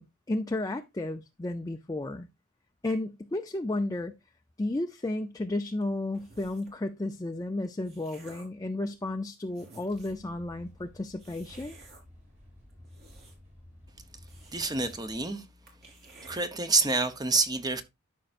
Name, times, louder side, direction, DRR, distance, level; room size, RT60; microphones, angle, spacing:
voice 1, 0.0-2.3 2.8-4.1 4.6-11.8, left 2 dB, 15° left, 0.5 m, -33 dB
sound 1, 6.1-6.8 7.5-8.6 9.2-9.3 9.5-10.3 11.2-12.0 12.7-13.6 13.9-14.0 14.3-15.0 15.3-15.4 15.7-16.4, right 3 dB, 50° right, 3.2 m, -53 dB
sound 2, 9.9-15.3, left 1 dB, 35° right, 3.2 m, -53 dB
voice 2, 14.5-15.4 16.3-17.8, right 3 dB, 20° right, 0.8 m, -27 dB
13.0 x 5.4 x 2.5 m
head